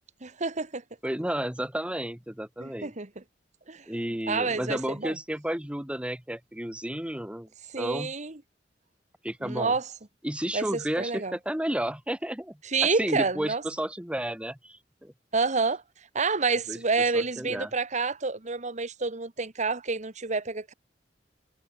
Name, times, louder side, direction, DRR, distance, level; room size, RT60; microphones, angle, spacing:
voice 1, 0.2-0.8 2.6-3.1 3.7-3.8 4.3-5.1 7.7-8.3 9.4-9.8 10.5-11.3 12.7-13.6 15.3-15.8 16.1-20.7, right 4 dB, 40° right, 1.6 m, -28 dB
voice 2, 1.0-2.9 3.9-7.5 7.8-8.1 9.2-9.7 10.2-15.1 16.7-16.8 17.1-17.7, right 1 dB, 5° right, 1.3 m, -32 dB
head